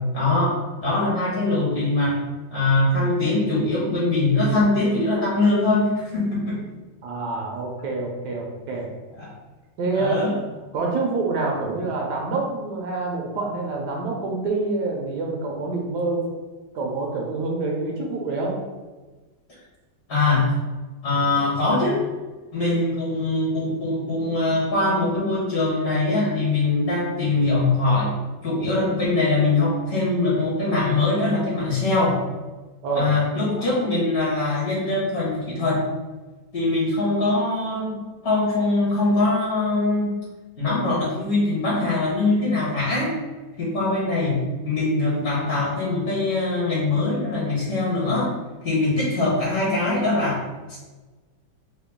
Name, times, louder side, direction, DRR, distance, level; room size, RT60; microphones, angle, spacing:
voice 1, 0.1-2.2 2.5-6.6 9.2-9.3 9.9-10.3 20.1-20.6 21.0-22.0 22.5-28.1 28.4-32.2 32.9-35.9 36.5-38.0 38.2-40.1 40.6-43.2 43.6-44.4 44.6-48.3 48.6-50.4 50.7-50.8, left 2 dB, 55° left, -7 dB, 1.9 m, -22 dB
voice 2, 7.0-8.9 9.8-10.2 10.7-16.3 16.7-18.5 32.8-33.1, right 3 dB, 75° right, 0 dB, 1.2 m, -26 dB
3.7 x 2.3 x 3.6 m, 1.3 s
omnidirectional pair, 1.9 m